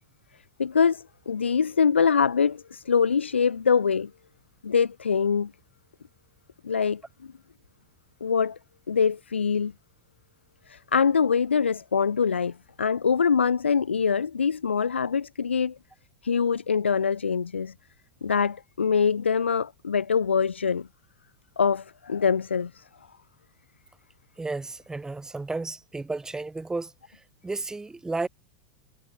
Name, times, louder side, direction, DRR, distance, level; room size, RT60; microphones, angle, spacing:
voice 1, 0.6-4.1 4.6-5.5 6.6-7.0 8.2-8.6 8.9-9.7 10.7-15.8 16.2-17.7 18.2-20.9 21.6-22.8, left 6 dB, 75° left, 1.5 m, -24 dB
voice 2, 24.4-26.9 27.4-28.3, right 3 dB, 10° right, 4.8 m, -32 dB
figure-of-eight pair, 85°, 6 cm